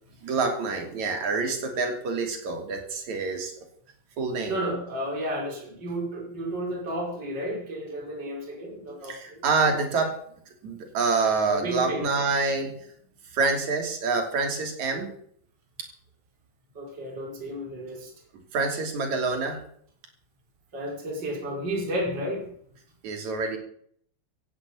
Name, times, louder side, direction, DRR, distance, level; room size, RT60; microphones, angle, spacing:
voice 1, 0.2-3.5 4.2-4.6 9.0-10.2 10.6-12.7 13.3-15.1 18.5-19.6 23.0-23.6, right 4 dB, 50° right, 2 dB, 4.2 m, -26 dB
voice 2, 4.5-9.4 11.5-12.0 16.8-18.1 20.7-22.5, right 1 dB, 25° right, -1 dB, 5.3 m, -32 dB
16.0 x 8.8 x 8.6 m, 0.63 s
omnidirectional pair, 4.5 m